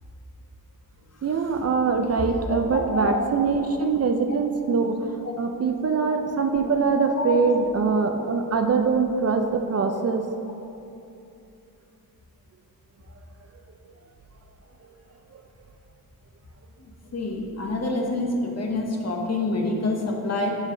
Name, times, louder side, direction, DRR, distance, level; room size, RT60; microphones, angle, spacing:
voice 1, 1.2-10.2, right 5 dB, 45° right, 5 dB, 0.4 m, -23 dB
voice 2, 2.4-3.2 5.2-5.4 6.0-6.1 6.6-6.7 7.1-7.4 8.5-8.6 17.1-20.5, left 2 dB, 45° left, 1 dB, 1.0 m, -27 dB
5.4 x 5.3 x 5.0 m, 2.7 s
wide cardioid pair, 115°, 37 cm